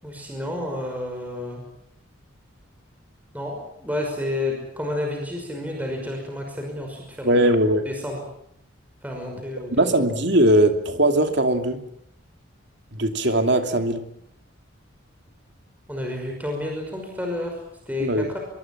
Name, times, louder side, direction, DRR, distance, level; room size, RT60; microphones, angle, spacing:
voice 1, 0.0-1.6 3.3-7.5 7.8-8.2 9.0-9.8 15.9-18.1, left 1 dB, 10° right, 1 dB, 5.7 m, -30 dB
voice 2, 7.2-7.9 9.7-11.8 12.9-14.0 18.0-18.3, right 1 dB, 55° right, 7 dB, 2.9 m, -20 dB
25.5 x 23.5 x 7.5 m, 0.73 s
head